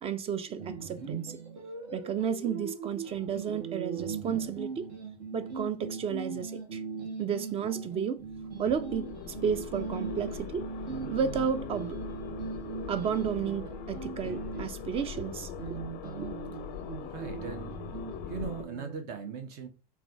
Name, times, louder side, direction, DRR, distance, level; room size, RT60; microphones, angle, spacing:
voice 1, 0.0-1.4 1.9-4.9 5.3-6.8 7.2-8.2 8.6-10.6 11.1-12.0 12.9-15.5, right 7 dB, 30° right, 0.4 m, -32 dB
sound 1, 0.6-19.0, right 5 dB, 70° right, 1.3 m, -40 dB
sound 2, 8.2-18.6, left 9 dB, 45° left, 0.4 m, -42 dB
voice 2, 17.1-17.8 18.3-19.7, right 6 dB, 50° right, 0.9 m, -39 dB
4.1 x 2.3 x 2.6 m
hypercardioid pair, 105°, 21 cm